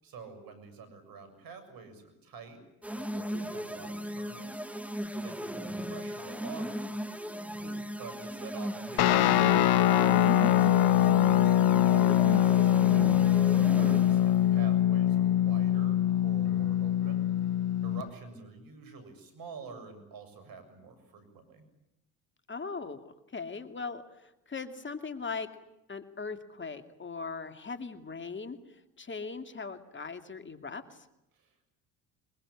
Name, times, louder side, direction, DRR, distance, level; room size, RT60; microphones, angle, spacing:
voice 1, 0.0-2.6 2.9-4.6 5.1-7.0 8.0-12.7 13.7-17.3 17.8-21.7 31.3-31.7, right 4 dB, 65° right, 11 dB, 7.0 m, -48 dB
sound 1, 2.8-14.4, equal, 5° right, 2.1 m, -37 dB
Guitar, 9.0-18.1, left 12 dB, 70° left, 1.4 m, -23 dB
voice 2, 22.5-23.0 23.3-25.5 25.9-31.1, left 4 dB, 30° left, 9 dB, 2.5 m, -40 dB
23.5 x 22.5 x 9.8 m, 0.88 s
hypercardioid pair, 65°, 38 cm